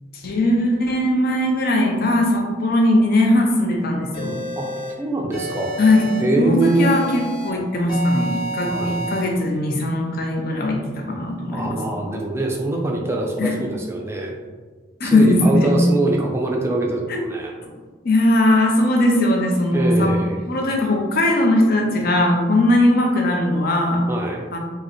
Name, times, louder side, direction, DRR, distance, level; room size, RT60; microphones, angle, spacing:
voice 1, 0.1-4.4 5.8-6.1 6.4-11.8 13.4-13.5 15.0-15.7 17.1-17.2 17.6-17.8 18.0-20.2 20.5-24.0 24.5-24.6, left 1 dB, 50° left, 1 dB, 0.6 m, -19 dB
sound 1, 4.1-4.9 5.3-6.2 6.6-7.5 7.9-9.2, right 1 dB, 25° left, 0.9 m, -30 dB
voice 2, 5.0-5.8 6.2-7.0 8.7-9.0 11.5-14.4 15.0-17.5 19.7-20.4 24.1-24.4, right 2 dB, 15° right, 0 dB, 0.4 m, -23 dB
4.5 x 2.1 x 3.0 m, 1.3 s
head